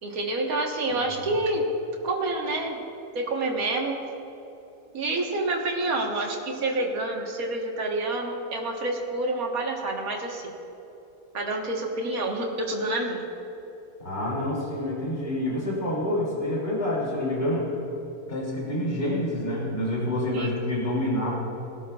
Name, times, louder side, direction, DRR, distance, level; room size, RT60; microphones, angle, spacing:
voice 1, 0.0-1.7 2.0-2.8 3.1-4.0 4.9-10.5 11.3-13.2 20.3-20.5, right 2 dB, 70° right, 0 dB, 1.8 m, -28 dB
voice 2, 14.0-17.8 18.3-21.3, left 1 dB, 40° left, -5 dB, 3.0 m, -27 dB
21.5 x 12.5 x 2.4 m, 2.9 s
omnidirectional pair, 1.6 m